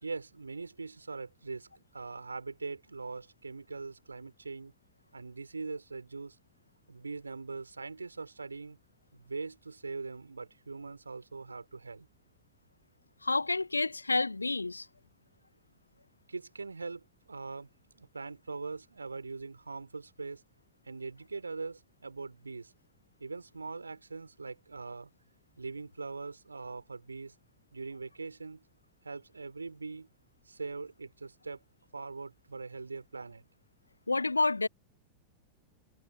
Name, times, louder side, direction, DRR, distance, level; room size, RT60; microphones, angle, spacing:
voice 1, 0.0-4.7 5.1-6.4 6.9-8.8 9.1-12.1 16.3-20.4 20.8-22.7 23.2-25.1 25.6-27.3 27.7-28.6 29.0-30.1 30.5-31.6 31.9-33.4, right 4 dB, 80° right, 3.9 m, -42 dB
voice 2, 13.2-14.9 34.1-34.7, left 3 dB, 80° left, 1.2 m, -29 dB
figure-of-eight pair, 90°, 0 cm